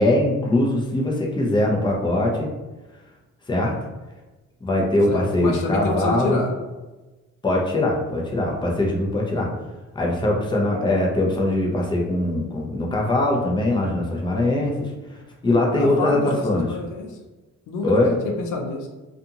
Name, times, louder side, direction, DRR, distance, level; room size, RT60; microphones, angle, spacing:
voice 1, 0.0-2.5 3.5-3.8 4.6-6.4 7.4-9.5 9.9-14.9 15.4-16.8 17.8-18.1, left 1 dB, 15° left, -2 dB, 0.6 m, -21 dB
voice 2, 5.1-6.5 15.7-17.2 17.7-18.9, left 3 dB, 90° left, 2 dB, 0.6 m, -28 dB
2.6 x 2.4 x 2.7 m, 1.2 s
cardioid pair, 90°, 30 cm